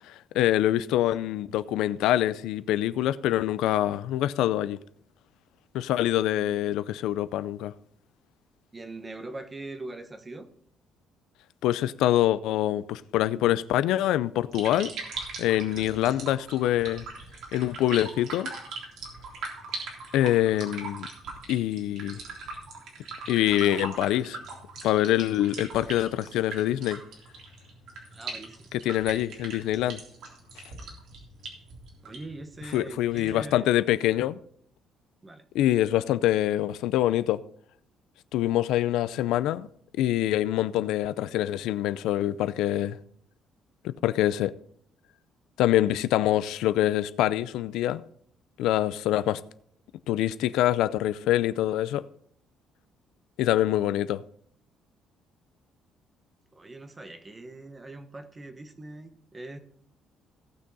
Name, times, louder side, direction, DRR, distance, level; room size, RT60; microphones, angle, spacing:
voice 1, 0.1-4.8 5.7-7.7 11.6-14.9 15.4-17.0 17.5-18.5 20.1-21.1 21.5-22.2 23.3-24.4 24.8-27.0 28.7-30.0 32.7-34.4 35.5-37.4 38.3-39.7 40.0-43.0 43.8-44.5 45.6-48.0 48.6-49.4 50.1-52.1 53.4-54.2, left 13 dB, 85° left, 0.5 m, -25 dB
voice 2, 8.7-10.5 28.1-28.7 32.0-33.7 35.2-35.4 56.5-59.6, right 2 dB, 15° right, 1.0 m, -42 dB
sound 1, 14.3-33.5, right 4 dB, 65° right, 3.5 m, -41 dB
17.0 x 6.3 x 4.1 m
cardioid pair, 160°, 0 cm